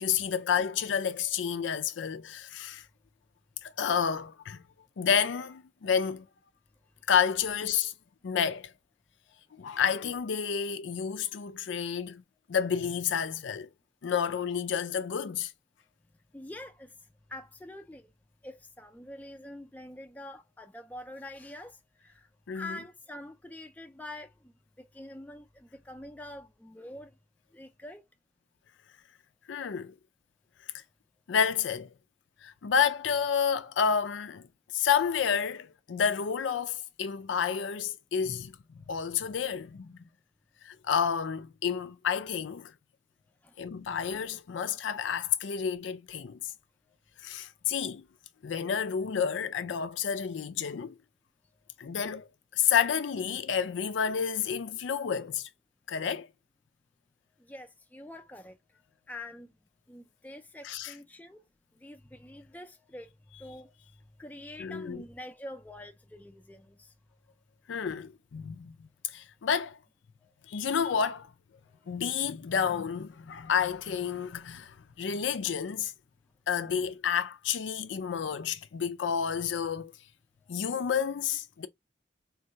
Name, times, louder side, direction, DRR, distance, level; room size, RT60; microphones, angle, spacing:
voice 1, 0.0-2.9 3.6-4.6 5.0-6.3 7.1-7.9 8.2-8.7 9.6-12.2 12.5-13.7 14.0-15.5 22.5-22.8 29.5-29.9 31.3-31.9 32.4-34.5 34.7-38.6 38.9-40.0 40.6-42.7 43.6-46.5 47.2-48.1 48.4-51.0 51.8-52.3 52.5-55.5 55.9-56.3 60.6-60.9 64.6-65.0 67.7-69.8 70.5-71.3 71.9-75.9 76.5-79.9 80.5-81.7, left 7 dB, 90° left, 0.4 m, -30 dB
voice 2, 16.3-16.9 17.3-18.1 18.4-21.8 22.0-22.3 22.5-24.5 24.8-27.1 27.5-28.0 38.9-39.1 43.4-43.5 46.2-46.3 57.4-58.6 59.1-59.5 59.9-61.4 61.8-63.1 63.4-63.7 64.2-66.9 70.2-70.3 77.9-78.0, left 1 dB, 10° left, 0.3 m, -45 dB
3.8 x 2.2 x 2.6 m
head